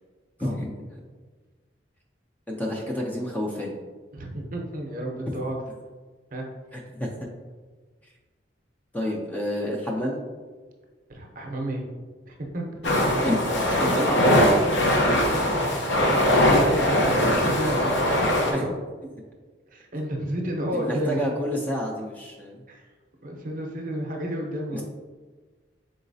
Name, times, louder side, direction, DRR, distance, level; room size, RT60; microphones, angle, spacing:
voice 1, 0.4-0.7 2.5-3.8 6.7-7.3 8.9-10.2 13.2-14.5 18.4-18.7 20.7-22.6 24.7-24.8, equal, 10° left, -1 dB, 0.4 m, -29 dB
voice 2, 4.1-5.6 6.3-6.4 11.1-11.8 12.3-13.4 15.5-15.8 16.4-18.7 19.7-21.2 22.7-22.8 23.2-24.8, right 1 dB, 45° right, 1 dB, 0.6 m, -31 dB
sound 1, 12.8-18.5, left 1 dB, 75° left, 0.7 m, -21 dB
3.9 x 3.8 x 2.6 m, 1.4 s
head